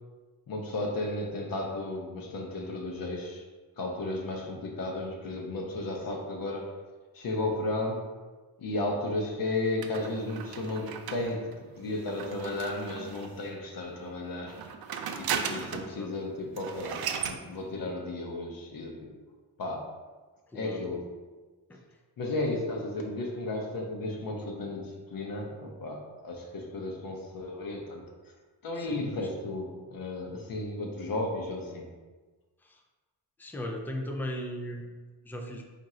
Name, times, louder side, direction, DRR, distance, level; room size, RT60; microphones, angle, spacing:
voice 1, 0.5-3.4 3.8-6.7 7.1-8.1 8.6-11.5 11.8-14.7 15.1-19.1 19.6-19.9 20.5-21.0 22.2-28.0 28.6-31.9, left 2 dB, 55° left, 1 dB, 0.7 m, -34 dB
sound 1, 9.8-13.5 14.4-16.0 16.3-16.4 16.6-17.4, right 7 dB, 60° right, 0.5 m, -36 dB
voice 2, 15.8-16.1 20.5-20.8 21.7-21.8 28.8-29.3 32.6-32.8 33.4-35.6, equal, 5° left, 2 dB, 0.3 m, -38 dB
3.6 x 2.6 x 4.2 m, 1.3 s
cardioid pair, 115°, 42 cm